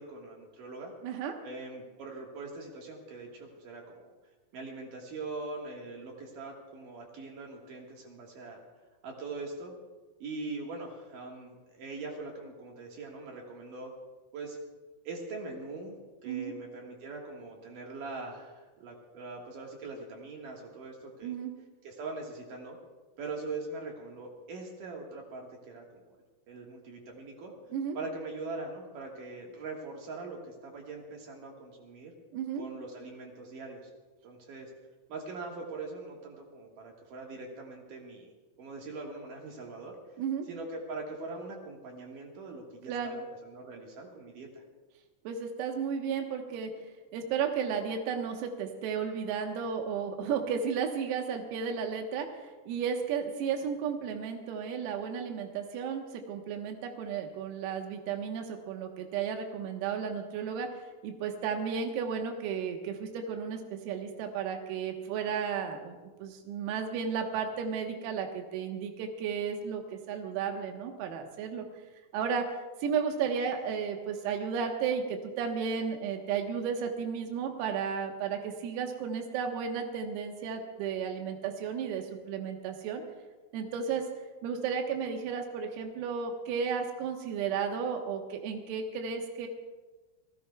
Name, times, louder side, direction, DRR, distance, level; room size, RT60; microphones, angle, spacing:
voice 1, 0.0-0.9 1.4-4.1 4.5-8.6 9.0-9.7 10.2-13.9 14.3-14.6 15.0-16.0 16.2-21.3 21.8-22.8 23.2-26.0 26.5-27.5 27.9-32.1 32.6-33.9 34.2-34.7 35.1-38.3 38.6-40.0 40.5-44.6, right 3 dB, 60° right, 0 dB, 2.3 m, -42 dB
voice 2, 1.0-1.4 16.3-16.5 21.2-21.5 27.7-28.0 32.3-32.6 40.2-40.5 42.9-43.2 45.3-46.7 47.1-60.7 61.0-71.6 72.1-72.5 72.8-83.0 83.5-84.1 84.4-89.5, right 6 dB, 90° right, 3 dB, 4.0 m, -33 dB
28.0 x 16.5 x 2.3 m, 1.2 s
omnidirectional pair, 5.9 m